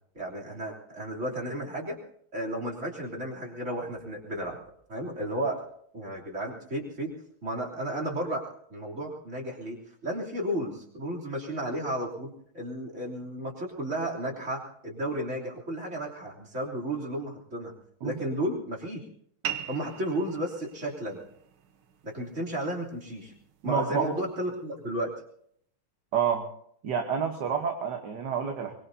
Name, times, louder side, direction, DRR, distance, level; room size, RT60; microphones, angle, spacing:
voice 1, 0.2-2.0 2.3-4.6 4.9-5.6 5.9-7.1 7.4-12.3 12.5-17.7 18.0-19.0 19.7-21.2 22.0-23.3 23.6-25.1, right 1 dB, 35° right, -3 dB, 3.5 m, -33 dB
sound 1, 19.4-24.5, right 9 dB, 80° right, 1.9 m, -42 dB
voice 2, 23.6-24.1 26.1-26.5 26.8-28.7, right 7 dB, 60° right, 4 dB, 1.7 m, -28 dB
24.0 x 21.5 x 2.8 m, 0.66 s
omnidirectional pair, 2.3 m